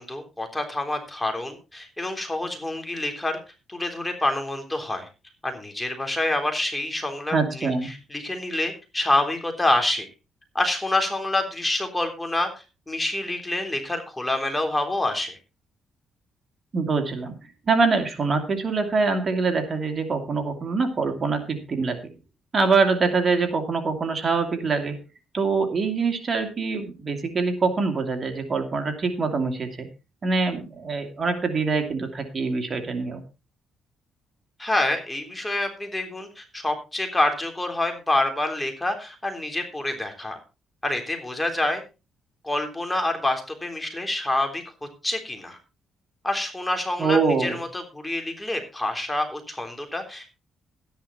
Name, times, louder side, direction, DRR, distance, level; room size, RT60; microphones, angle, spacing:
voice 1, 0.0-3.4 3.7-5.1 5.4-10.1 10.6-12.5 12.9-15.4 34.6-40.4 40.8-41.8 42.4-44.6 45.0-45.6 46.2-50.3, left 2 dB, 10° left, 4 dB, 3.5 m, -27 dB
voice 2, 7.3-7.9 16.7-22.0 22.5-25.0 25.3-29.9 30.2-33.2 47.0-47.6, right 4 dB, 40° right, 5 dB, 2.5 m, -24 dB
13.0 x 10.5 x 4.1 m, 0.30 s
cardioid pair, 90°, 0 cm